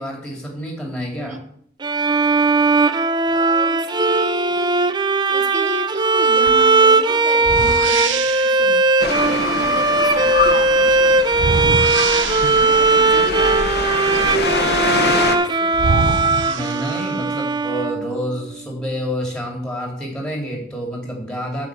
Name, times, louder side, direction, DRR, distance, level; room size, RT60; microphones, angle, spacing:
voice 1, 0.0-1.3 16.4-21.7, equal, 5° left, 0 dB, 2.7 m, -28 dB
voice 2, 1.1-1.5 3.3-4.8 5.3-8.8 9.2-11.3 12.5-15.8, right 1 dB, 40° right, 8 dB, 1.1 m, -33 dB
Bowed string instrument, 1.8-18.4, right 3 dB, 25° right, 0.4 m, -18 dB
sound 1, 6.5-6.6 7.4-8.7 11.3-12.9 15.2-15.3 15.7-17.3, right 5 dB, 75° right, 0.6 m, -24 dB
sound 2, 9.0-15.4, left 4 dB, 60° left, 0.9 m, -24 dB
8.3 x 4.9 x 7.5 m, 0.65 s
head